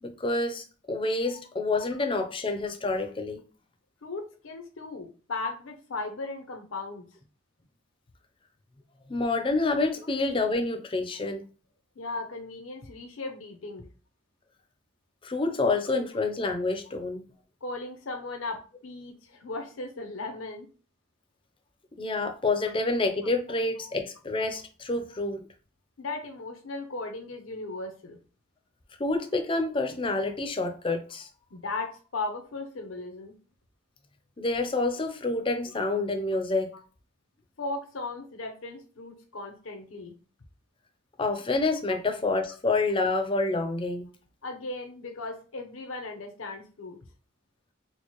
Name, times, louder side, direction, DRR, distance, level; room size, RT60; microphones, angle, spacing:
voice 1, 0.0-3.4 9.1-11.4 15.2-17.2 22.0-25.5 29.0-31.3 34.4-36.7 41.2-44.1, left 3 dB, 25° left, 0.5 m, -28 dB
voice 2, 4.0-7.1 12.0-13.9 17.6-20.7 26.0-28.2 31.5-33.3 36.7-36.8 37.6-40.1 44.4-47.0, left 3 dB, 80° left, 0.7 m, -37 dB
4.5 x 2.1 x 3.0 m
head